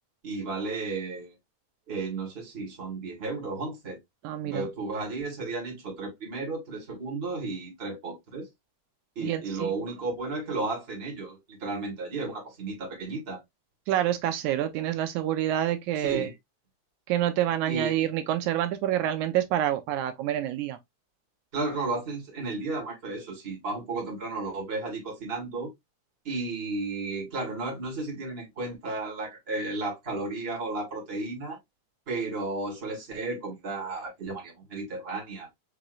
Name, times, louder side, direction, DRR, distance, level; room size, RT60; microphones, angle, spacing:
voice 1, 0.2-1.3 1.9-4.0 4.4-8.5 9.2-13.4 16.0-16.3 17.7-18.1 21.5-25.7 26.2-31.6 32.1-35.5, right 3 dB, 25° right, 1.7 m, -33 dB
voice 2, 4.2-4.7 9.2-9.7 13.9-16.3 17.1-20.8, right 12 dB, 85° right, 2.1 m, -27 dB
5.6 x 3.0 x 2.5 m
omnidirectional pair, 3.4 m